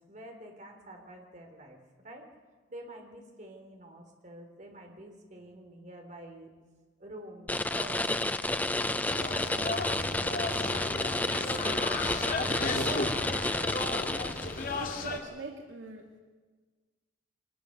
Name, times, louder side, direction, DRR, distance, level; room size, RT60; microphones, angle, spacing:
voice 1, 0.0-1.8 2.0-2.2 2.7-6.5 7.0-12.8, right 1 dB, 40° right, 2 dB, 3.6 m, -48 dB
sound 1, 7.5-14.7, left 2 dB, 10° left, 0.6 m, -31 dB
sound 2, 9.1-15.2, left 2 dB, 45° left, 2.4 m, -34 dB
voice 2, 14.8-16.2, right 2 dB, 70° right, 1 dB, 2.2 m, -42 dB
24.5 x 20.0 x 6.7 m, 1.4 s
head